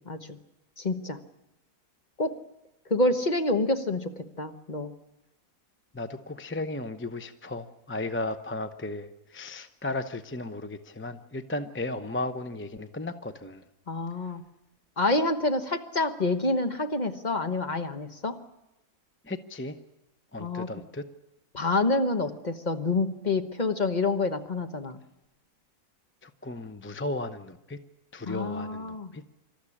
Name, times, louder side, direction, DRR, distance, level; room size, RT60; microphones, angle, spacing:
voice 1, 0.1-0.4 0.8-1.2 2.2-2.4 2.9-4.9 13.9-14.4 15.0-18.3 20.4-20.7 21.5-25.0 28.2-29.1, left 2 dB, 35° left, 7 dB, 1.2 m, -27 dB
voice 2, 5.9-13.6 19.2-19.8 20.3-21.1 26.2-27.8 28.1-29.2, left 2 dB, 10° left, 9 dB, 0.7 m, -35 dB
26.5 x 13.5 x 10.0 m, 0.94 s
omnidirectional pair, 1.4 m